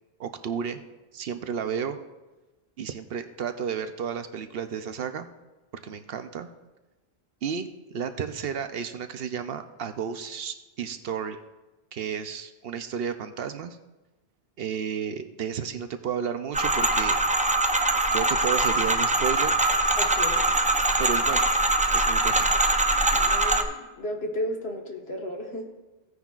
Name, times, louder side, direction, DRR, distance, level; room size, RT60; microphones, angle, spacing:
voice 1, 0.2-0.8 1.1-2.0 2.8-5.3 5.8-6.5 7.4-11.4 11.9-13.8 14.6-17.2 18.1-19.5 21.0-21.5 21.9-22.5, right 7 dB, 70° right, 9 dB, 0.8 m, -32 dB
sound 1, 16.5-23.6, right 2 dB, 10° right, 0.4 m, -23 dB
voice 2, 20.0-20.4 23.0-25.7, left 1 dB, 80° left, 1 dB, 1.7 m, -34 dB
16.0 x 9.5 x 2.4 m, 1.1 s
omnidirectional pair, 1.0 m